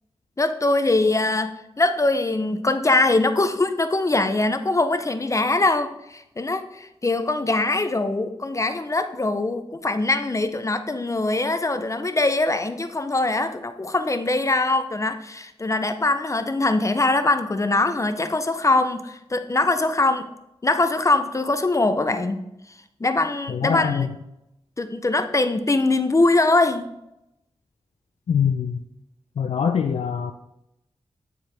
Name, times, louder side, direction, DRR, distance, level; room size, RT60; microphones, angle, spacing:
voice 1, 0.4-20.3 20.6-22.5 23.0-24.1 24.8-26.9, left 2 dB, 30° left, 9 dB, 0.5 m, -22 dB
voice 2, 23.5-24.1 28.3-28.8 29.4-30.3, left 7 dB, 75° left, 5 dB, 0.4 m, -23 dB
9.6 x 4.5 x 3.3 m, 0.85 s
wide cardioid pair, 80°, 11 cm